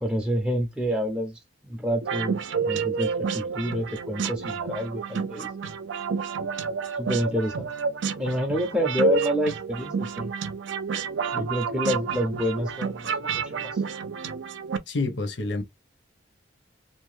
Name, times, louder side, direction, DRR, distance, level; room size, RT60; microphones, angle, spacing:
voice 1, 0.0-1.4 1.7-5.5 6.9-7.7 8.2-10.3 11.3-13.8, equal, 5° right, 0.4 m, -28 dB
sound 1, 2.0-14.8, right 6 dB, 90° right, 0.5 m, -30 dB
voice 2, 14.9-15.6, left 3 dB, 75° left, 0.8 m, -28 dB
2.6 x 2.2 x 3.1 m
head